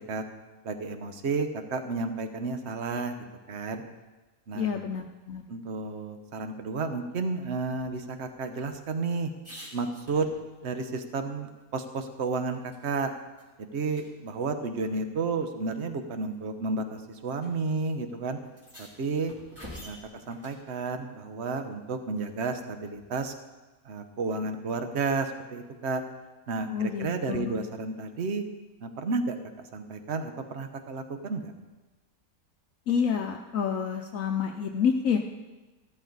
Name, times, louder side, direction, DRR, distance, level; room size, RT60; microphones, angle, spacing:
voice 1, 0.6-3.8 4.5-4.8 5.5-9.3 9.7-10.3 10.6-13.1 13.6-18.4 18.8-19.3 19.8-20.0 20.3-23.3 23.8-26.0 26.5-28.4 28.8-29.4 29.7-31.5, right 4 dB, 50° right, 8 dB, 1.2 m, -32 dB
voice 2, 4.5-5.4 26.7-27.6 32.9-35.2, left 7 dB, 70° left, 4 dB, 1.0 m, -28 dB
sound 1, 7.8-10.8 11.1-11.2 11.6-13.0 13.4-13.5 13.9-14.1 15.1-15.2 16.1-16.4 17.4-17.5 17.8-17.9 18.4-20.6 22.9-23.4, equal, 10° right, 2.8 m, -49 dB
14.5 x 13.0 x 4.0 m, 1.2 s
omnidirectional pair, 1.6 m